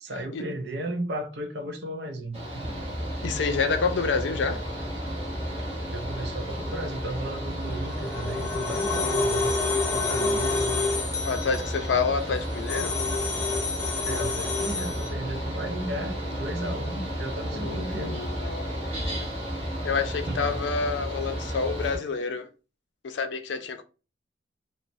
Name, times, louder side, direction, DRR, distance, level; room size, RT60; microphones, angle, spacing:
voice 1, 0.0-2.8 5.9-9.5 9.9-10.8 14.0-18.1 20.3-20.6, right 1 dB, 70° right, 0.5 m, -35 dB
Mechanical fan, 2.3-22.0, equal, 35° right, 0.8 m, -32 dB
voice 2, 3.2-4.6 11.2-13.0 17.5-18.9 19.2-19.3 19.8-22.5 23.0-23.8, left 5 dB, 85° left, 0.4 m, -28 dB
sound 1, 7.6-15.1, left 3 dB, 15° left, 0.5 m, -29 dB
3.0 x 2.0 x 2.5 m
head